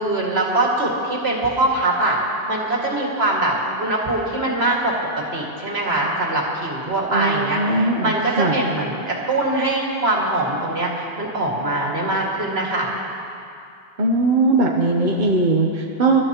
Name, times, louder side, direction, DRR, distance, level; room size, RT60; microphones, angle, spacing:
voice 1, 0.0-2.2 2.5-4.9 5.3-12.9, right 2 dB, 70° right, -3 dB, 2.4 m, -22 dB
voice 2, 7.1-8.6 14.0-16.2, right 2 dB, 50° right, 0 dB, 1.0 m, -19 dB
23.0 x 13.0 x 3.0 m, 2.6 s
omnidirectional pair, 1.1 m